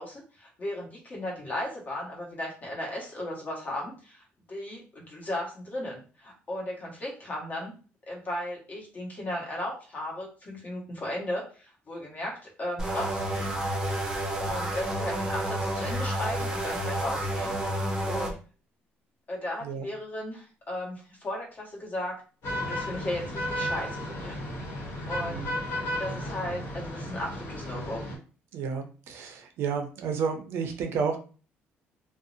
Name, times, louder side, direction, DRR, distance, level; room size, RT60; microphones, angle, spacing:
voice 1, 0.0-7.7 8.1-13.5 14.4-17.7 18.1-18.4 19.3-22.2 22.5-24.4 25.1-25.4 26.0-28.0, left 1 dB, 40° left, -2 dB, 1.1 m, -36 dB
sound 1, 12.8-18.3, right 1 dB, 15° right, 0.6 m, -30 dB
sound 2, 22.4-28.2, equal, 65° left, 1.0 m, -34 dB
voice 2, 25.2-25.5 28.5-31.2, right 6 dB, 70° right, 6 dB, 0.5 m, -31 dB
2.6 x 2.0 x 2.5 m, 0.38 s
cardioid pair, 110°, 4 cm